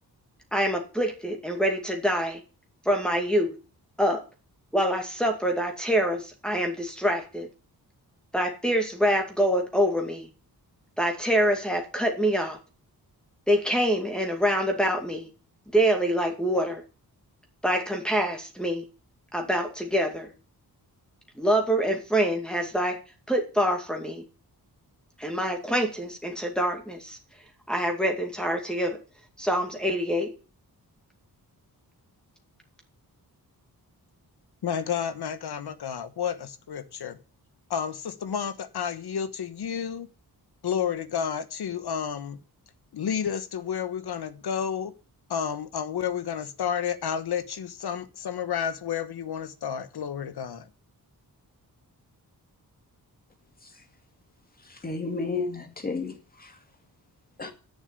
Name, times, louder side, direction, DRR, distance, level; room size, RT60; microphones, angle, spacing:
voice 1, 0.5-2.4 2.9-3.5 4.0-4.2 4.7-7.5 8.3-10.3 11.0-12.6 13.5-15.3 15.7-16.8 17.6-18.8 19.3-20.3 21.4-23.0 23.3-24.2 25.2-27.2 27.7-29.0 29.4-30.3, equal, ahead, 2.3 m, -25 dB
voice 2, 34.6-37.2 37.7-40.1 40.6-42.4 42.9-44.9 45.3-50.7, left 8 dB, 90° left, 1.4 m, -31 dB
voice 3, 54.7-56.5 57.4-57.5, left 4 dB, 25° left, 2.3 m, -32 dB
11.0 x 7.2 x 8.2 m
wide cardioid pair, 175°, 38 cm